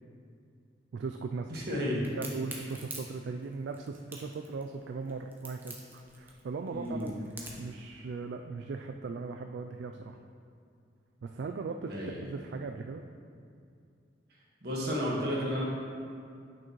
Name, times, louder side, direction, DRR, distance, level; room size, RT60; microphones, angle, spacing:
voice 1, 0.9-1.6 2.1-7.1 7.6-10.2 11.2-13.0, right 4 dB, 75° right, 4 dB, 0.3 m, -38 dB
voice 2, 1.5-2.0 6.7-7.1 11.8-12.3 14.6-15.6, equal, 60° right, -5 dB, 1.6 m, -32 dB
Crack, 2.0-7.7, right 2 dB, 10° right, 0.9 m, -45 dB
8.5 x 6.2 x 3.1 m, 2.4 s
head